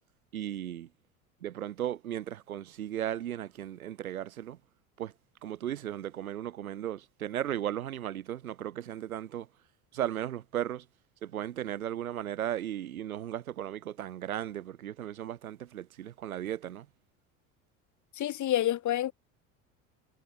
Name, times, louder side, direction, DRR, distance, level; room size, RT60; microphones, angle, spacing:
voice 1, 0.3-0.9 1.4-4.6 5.0-5.1 5.4-9.5 9.9-10.9 11.2-16.9, right 11 dB, 90° right, 5.4 m, -36 dB
voice 2, 18.2-19.1, left 12 dB, 45° left, 2.8 m, -28 dB
hypercardioid pair, 85°, 41 cm